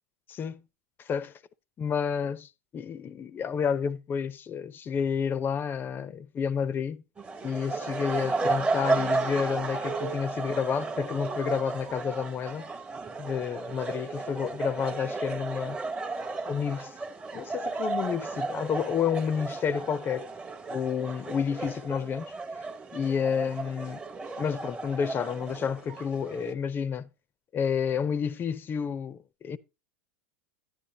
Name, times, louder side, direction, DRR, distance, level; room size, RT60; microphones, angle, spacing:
voice 1, 0.3-0.6 1.0-1.3 1.8-7.0 7.4-12.7 13.2-15.8 16.5-16.9 17.3-20.3 20.7-22.3 22.9-24.0 24.4-27.1 27.5-29.6, left 7 dB, 30° left, 0.6 m, -30 dB
sound 1, 7.2-26.5, right 3 dB, 15° right, 0.8 m, -34 dB
9.9 x 9.8 x 2.8 m
supercardioid pair, 115°, 7 cm